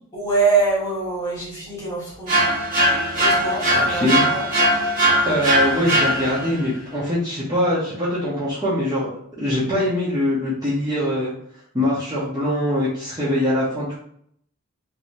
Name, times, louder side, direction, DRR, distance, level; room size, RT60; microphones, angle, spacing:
voice 1, 0.1-2.5 3.1-4.5, right 3 dB, 15° left, -9 dB, 1.4 m, -24 dB
sound 1, 2.3-6.6, right 1 dB, 35° right, 1.1 m, -20 dB
voice 2, 3.7-4.3 5.2-9.1 9.4-11.3 11.7-14.0, left 1 dB, 15° right, -9 dB, 0.8 m, -22 dB
3.2 x 2.9 x 2.6 m, 0.66 s
head